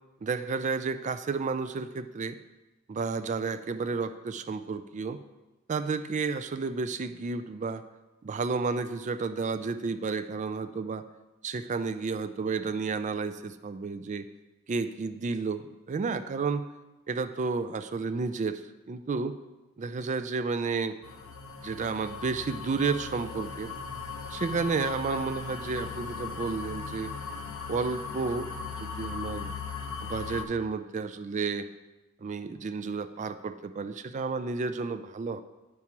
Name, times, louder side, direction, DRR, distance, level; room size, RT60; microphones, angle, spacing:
voice 1, 0.2-2.4 2.9-5.2 5.7-7.8 8.2-11.0 11.4-14.3 14.7-16.7 17.1-18.6 18.9-19.4 19.8-21.0 21.6-23.7 24.3-27.1 27.7-29.5 30.0-31.7 32.2-35.4, right 4 dB, 35° right, 10 dB, 0.3 m, -31 dB
sound 1, 21.0-30.5, left 5 dB, 70° left, 0.7 m, -38 dB
10.5 x 4.7 x 2.9 m, 1.1 s
head